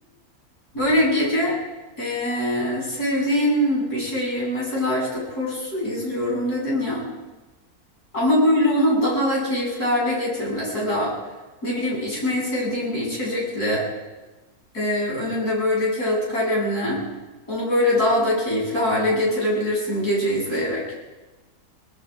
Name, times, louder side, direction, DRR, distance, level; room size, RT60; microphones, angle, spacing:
voice 1, 0.7-1.6 2.0-7.1 8.1-11.1 11.6-13.8 14.7-17.0 17.5-20.8, left 1 dB, 85° left, -5 dB, 8.8 m, -23 dB
25.5 x 19.0 x 5.3 m, 1.2 s
omnidirectional pair, 1.6 m